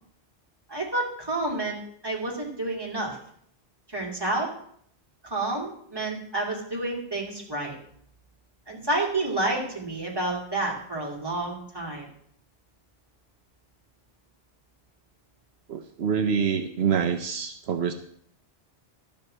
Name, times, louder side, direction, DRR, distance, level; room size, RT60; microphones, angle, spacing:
voice 1, 0.7-3.2 3.9-4.5 5.2-7.8 8.7-12.1, right 2 dB, 20° right, -2 dB, 2.8 m, -29 dB
voice 2, 15.7-17.9, right 6 dB, 75° right, 6 dB, 1.0 m, -26 dB
12.0 x 5.3 x 7.7 m, 0.66 s
omnidirectional pair, 1.1 m